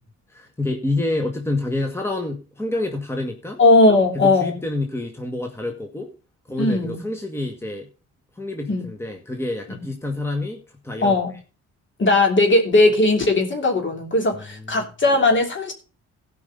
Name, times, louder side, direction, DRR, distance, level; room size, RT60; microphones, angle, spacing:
voice 1, 0.3-3.6 4.1-6.1 6.5-7.9 8.3-11.2 14.3-14.4 14.8-14.9, left 2 dB, 10° left, 3 dB, 1.6 m, -28 dB
voice 2, 3.6-4.6 6.6-7.0 8.7-8.8 9.7-9.8 11.0-11.3 12.0-15.7, left 2 dB, 40° left, 4 dB, 3.2 m, -18 dB
16.0 x 5.5 x 5.3 m, 0.34 s
cardioid pair, 90°, 30 cm